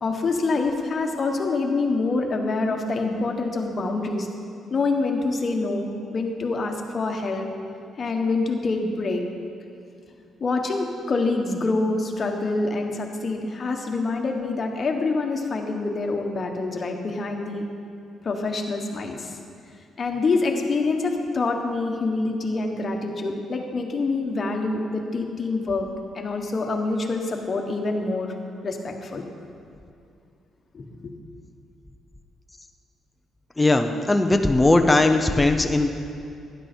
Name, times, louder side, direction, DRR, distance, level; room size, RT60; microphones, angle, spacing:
voice 1, 0.0-4.3 4.7-7.5 8.0-9.2 10.4-17.7 18.2-19.4 20.0-25.9 26.1-28.3 28.6-29.2 30.7-30.8, left 3 dB, 40° left, 2 dB, 1.4 m, -26 dB
voice 2, 33.6-35.9, left 2 dB, 15° left, 5 dB, 0.7 m, -19 dB
12.5 x 10.0 x 4.5 m, 2.5 s
cardioid pair, 90°, 0 cm